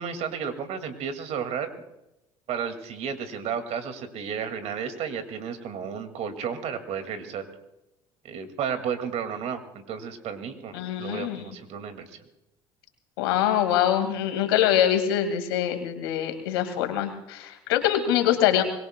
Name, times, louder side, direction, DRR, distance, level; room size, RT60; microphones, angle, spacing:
voice 1, 0.0-1.7 2.5-7.4 8.2-12.2, right 7 dB, 65° right, 8 dB, 2.1 m, -33 dB
voice 2, 10.7-11.4 13.2-18.6, left 11 dB, 90° left, 7 dB, 1.9 m, -24 dB
24.5 x 21.0 x 2.2 m, 0.93 s
hypercardioid pair, 70°, 12 cm